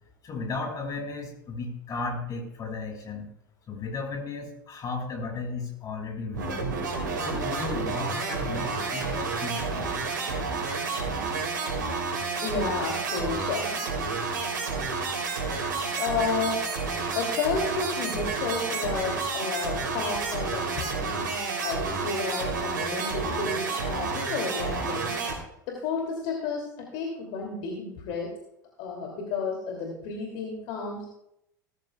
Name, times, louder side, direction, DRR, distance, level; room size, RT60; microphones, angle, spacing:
voice 1, 0.2-3.3 3.7-6.7 7.2-9.9, left 3 dB, 35° left, 2 dB, 5.5 m, -35 dB
sound 1, 6.3-25.4, right 4 dB, 75° right, 3.1 m, -30 dB
voice 2, 12.4-13.8 16.0-16.6 17.1-21.3 21.6-25.2 25.7-28.3 28.8-31.2, left 4 dB, 55° left, 1 dB, 2.6 m, -31 dB
19.0 x 13.5 x 2.3 m, 0.78 s
figure-of-eight pair, 75°, 11 cm